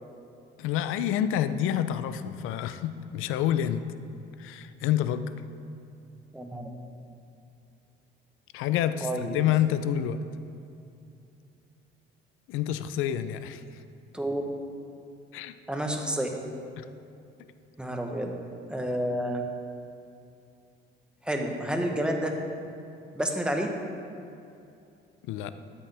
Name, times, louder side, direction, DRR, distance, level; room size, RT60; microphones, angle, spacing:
voice 1, 0.6-3.9 4.4-5.3 8.5-10.2 12.5-13.8 15.3-15.6 16.8-16.9 25.2-25.5, left 10 dB, 80° left, 12 dB, 0.5 m, -28 dB
voice 2, 6.3-6.7 9.0-9.4 14.1-14.4 15.7-16.4 17.8-18.3 18.7-19.4 21.2-22.3 23.1-23.7, right 1 dB, 5° right, 2 dB, 1.1 m, -29 dB
12.0 x 7.8 x 3.4 m, 2.6 s
cardioid pair, 105°, 21 cm